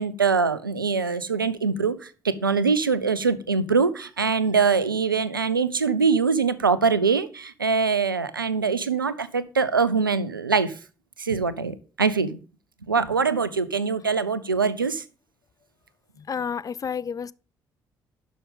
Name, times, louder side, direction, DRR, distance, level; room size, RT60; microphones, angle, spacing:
voice 1, 0.0-10.8 11.2-12.4 12.9-15.0, right 5 dB, 85° right, 0.5 m, -23 dB
voice 2, 16.2-17.3, left 7 dB, 30° left, 0.5 m, -30 dB
11.5 x 6.3 x 5.2 m
figure-of-eight pair, 45°, 11 cm